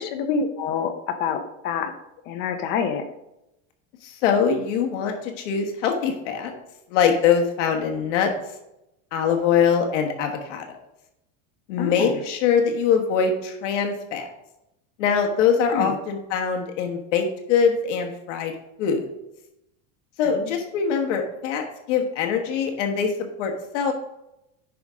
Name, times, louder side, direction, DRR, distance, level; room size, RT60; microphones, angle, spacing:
voice 1, 0.0-1.9 2.3-3.0 11.8-12.2 15.7-15.9 20.2-20.6, left 6 dB, 30° left, 8 dB, 0.5 m, -27 dB
voice 2, 4.0-6.5 6.9-8.3 9.1-10.8 11.7-14.3 15.0-19.1 20.2-23.1 23.4-23.9, left 6 dB, 70° left, 3 dB, 1.4 m, -23 dB
10.0 x 5.1 x 3.6 m, 0.88 s
supercardioid pair, 180°, 38 cm